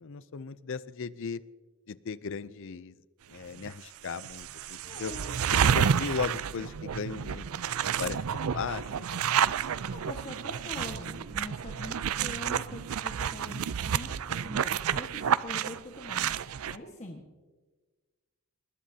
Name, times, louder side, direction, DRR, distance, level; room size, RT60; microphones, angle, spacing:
voice 1, 0.0-1.4 1.9-2.9 3.3-5.1 5.5-7.5 8.0-8.2 8.5-9.5, left 5 dB, 60° left, 17 dB, 0.5 m, -36 dB
sound 1, 3.6-3.7 4.1-16.8, right 8 dB, 75° right, 0.5 m, -30 dB
voice 2, 4.8-5.3 9.9-16.3 16.7-17.2, left 1 dB, 30° left, 0 dB, 1.5 m, -44 dB
21.0 x 20.0 x 2.8 m, 1.3 s
head